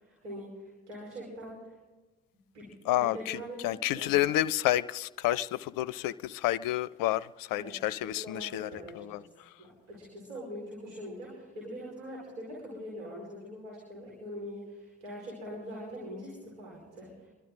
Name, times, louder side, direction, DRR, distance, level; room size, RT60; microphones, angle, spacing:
voice 1, 0.0-1.7 2.5-2.7 2.9-3.6 3.9-4.2 7.5-7.7 8.0-9.3 9.6-17.3, equal, 80° right, 5.1 m, -43 dB
voice 2, 2.9-8.7 9.0-9.2, left 14 dB, 60° left, 0.5 m, -30 dB
28.0 x 12.0 x 3.9 m
hypercardioid pair, 40°, 38 cm